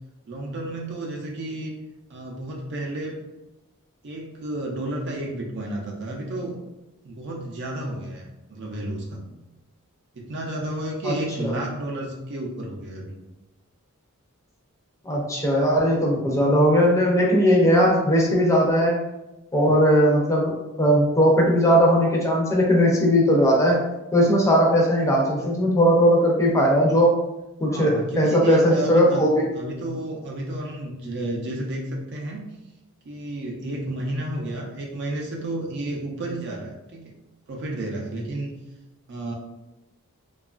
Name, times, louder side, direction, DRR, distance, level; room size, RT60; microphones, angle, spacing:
voice 1, 0.3-1.7 2.1-3.2 4.0-6.6 7.0-9.2 10.1-13.1 27.6-32.4 33.0-37.1 37.5-38.5 39.1-39.3, right 1 dB, 50° right, -1 dB, 0.4 m, -31 dB
voice 2, 11.0-11.5 15.0-19.0 19.5-23.8 24.1-27.2 27.6-29.4, equal, 15° left, -2 dB, 0.5 m, -19 dB
2.8 x 2.3 x 2.4 m, 0.96 s
head